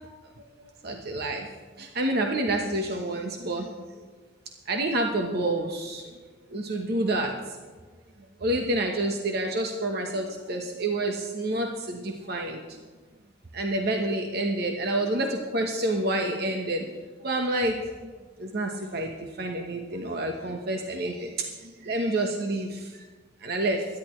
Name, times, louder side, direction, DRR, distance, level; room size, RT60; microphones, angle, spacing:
voice 1, 0.8-1.5 1.8-3.7 4.7-6.0 6.5-7.3 8.4-12.6 13.5-16.8 17.2-18.1 18.4-21.3 21.6-22.9 23.4-23.8, right 1 dB, 55° right, 2 dB, 1.2 m, -28 dB
22.0 x 11.0 x 3.2 m, 1.4 s
head